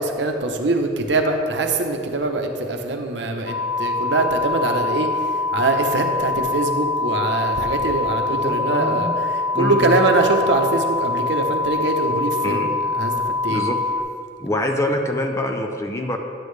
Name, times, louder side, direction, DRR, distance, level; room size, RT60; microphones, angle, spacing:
voice 1, 0.0-5.2 5.5-12.6 12.9-13.6, right 2 dB, 70° right, 4 dB, 0.8 m, -23 dB
sound 1, 3.5-14.0, left 3 dB, 55° left, 1.8 m, -24 dB
voice 2, 8.3-9.1 9.5-10.0 12.4-12.7 13.5-14.0 14.4-16.2, left 1 dB, 15° left, 4 dB, 0.5 m, -25 dB
10.5 x 8.4 x 3.3 m, 2.3 s
head